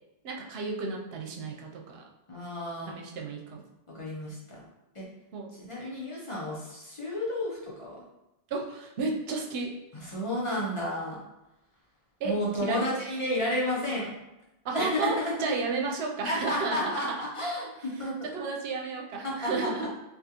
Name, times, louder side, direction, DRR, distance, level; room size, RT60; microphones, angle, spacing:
voice 1, 0.2-2.0 2.9-3.6 5.3-5.5 8.5-9.7 12.2-12.8 14.6-17.3 18.2-19.9, right 4 dB, 75° right, 0 dB, 0.8 m, -32 dB
voice 2, 2.3-3.0 3.9-4.6 4.9-5.1 5.5-8.0 9.9-11.2 12.2-14.1 14.7-15.5 16.2-18.1 19.2-19.7, left 1 dB, 35° left, -5 dB, 0.7 m, -32 dB
3.6 x 2.4 x 2.8 m, 0.94 s
omnidirectional pair, 1.1 m